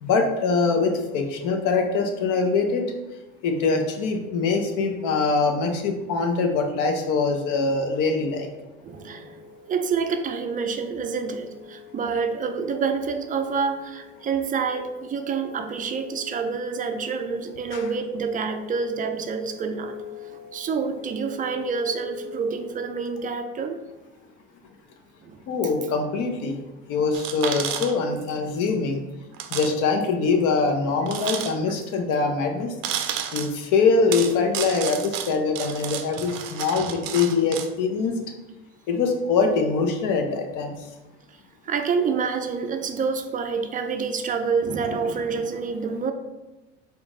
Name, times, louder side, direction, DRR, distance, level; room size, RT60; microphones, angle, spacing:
voice 1, 0.0-2.8 3.4-8.5 17.7-17.8 25.5-26.6 26.9-29.0 29.5-32.7 33.3-38.1 38.9-40.7, left 4 dB, 55° left, 4 dB, 0.9 m, -23 dB
voice 2, 8.8-9.4 9.7-19.9 20.2-23.8 25.2-25.4 36.8-37.1 41.7-46.1, right 5 dB, 25° right, 7 dB, 0.4 m, -27 dB
sound 1, 8.9-22.7, left 5 dB, 75° left, 1.2 m, -44 dB
sound 2, 27.1-28.3 28.6-28.7 29.3-29.7 30.0-30.1 31.1-31.8 32.8-33.5 34.1-37.7, right 9 dB, 85° right, 0.5 m, -31 dB
4.4 x 2.6 x 3.6 m, 1.1 s
hypercardioid pair, 85°, 37 cm